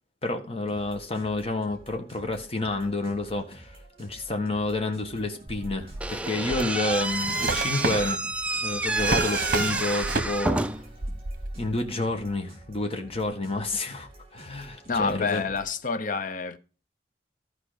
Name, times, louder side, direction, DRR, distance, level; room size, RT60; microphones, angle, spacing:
voice 1, 0.2-8.2 8.6-10.8 11.6-15.5, left 2 dB, 35° left, 1.5 m, -29 dB
sound 1, 0.7-15.8, right 1 dB, 35° right, 3.2 m, -50 dB
Drawer open or close, 5.5-10.7 11.0-11.8, right 3 dB, 50° right, 1.1 m, -30 dB
Slam / Squeak, 6.0-11.0, right 2 dB, 5° right, 0.4 m, -29 dB
voice 2, 14.9-16.6, left 4 dB, 50° left, 0.7 m, -28 dB
14.0 x 4.8 x 5.0 m
head